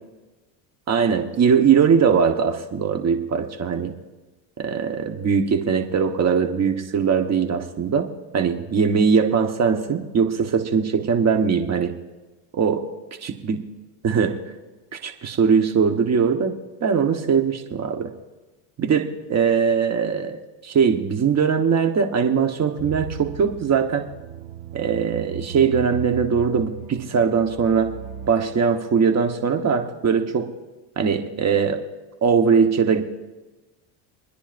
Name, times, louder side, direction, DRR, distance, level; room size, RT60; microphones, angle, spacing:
voice 1, 0.9-3.9 4.6-11.9 12.5-12.9 13.2-13.6 14.0-14.4 14.9-18.1 18.8-24.1 24.7-27.9 28.3-30.5 31.0-31.8 32.2-33.0, right 6 dB, 35° right, 5 dB, 1.3 m, -21 dB
sound 1, 22.8-28.3, right 8 dB, 50° right, 1.7 m, -36 dB
27.5 x 10.0 x 2.6 m, 1.2 s
supercardioid pair, 105°, 48 cm